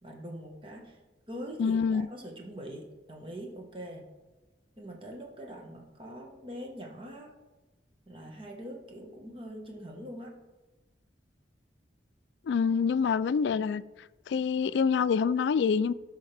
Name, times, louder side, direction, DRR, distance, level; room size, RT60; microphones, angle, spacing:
voice 1, 0.0-1.0 1.3-4.1 4.8-7.3 8.1-10.3, equal, 30° right, 1.4 m, -43 dB
voice 2, 1.6-2.1 12.5-13.8 14.3-15.9, left 6 dB, 75° left, 0.3 m, -26 dB
13.5 x 5.6 x 3.4 m
head